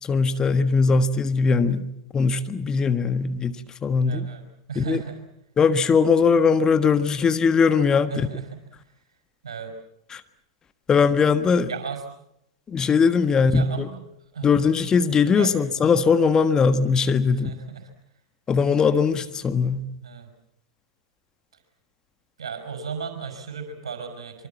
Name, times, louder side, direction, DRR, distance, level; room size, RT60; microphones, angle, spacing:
voice 1, 0.0-4.3 4.7-5.0 5.6-8.4 10.1-10.2 10.9-11.7 12.7-13.9 14.4-17.6 18.5-19.9, left 5 dB, 25° left, 11 dB, 1.5 m, -20 dB
voice 2, 4.0-4.4 4.7-5.2 8.1-8.4 9.4-9.7 11.7-12.0 13.5-13.9 14.3-14.6 15.3-15.5 15.9-16.1 17.3-17.8 20.0-20.3 22.4-24.5, right 6 dB, 80° right, 7 dB, 6.0 m, -35 dB
25.0 x 24.5 x 7.3 m, 0.77 s
hypercardioid pair, 100°, 3 cm